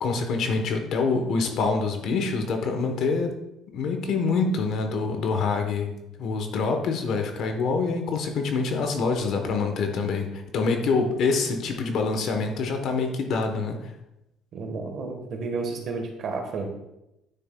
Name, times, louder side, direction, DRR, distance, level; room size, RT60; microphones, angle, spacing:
voice 1, 0.0-3.3 3.7-13.9, left 4 dB, 55° left, 5 dB, 0.9 m, -26 dB
voice 2, 14.5-16.7, right 4 dB, 45° right, 3 dB, 1.2 m, -31 dB
9.4 x 6.8 x 2.2 m, 0.91 s
cardioid pair, 165°, 0 cm